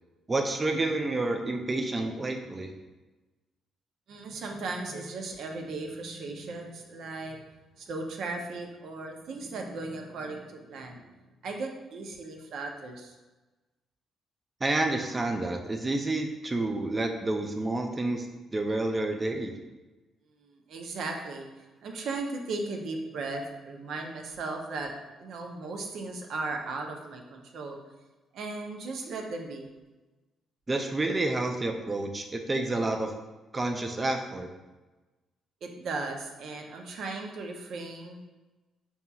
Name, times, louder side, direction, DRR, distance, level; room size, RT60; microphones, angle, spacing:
voice 1, 0.3-2.7 14.6-18.3 18.5-19.5 30.7-33.1 33.5-34.5, right 2 dB, 25° right, 3 dB, 0.4 m, -29 dB
voice 2, 4.1-7.4 7.8-11.0 11.4-13.1 20.4-21.5 21.8-24.9 25.2-27.8 28.3-29.6 35.6-38.2, right 3 dB, 70° right, 2 dB, 0.6 m, -36 dB
5.5 x 2.8 x 2.3 m, 1.2 s
cardioid pair, 90°, 0 cm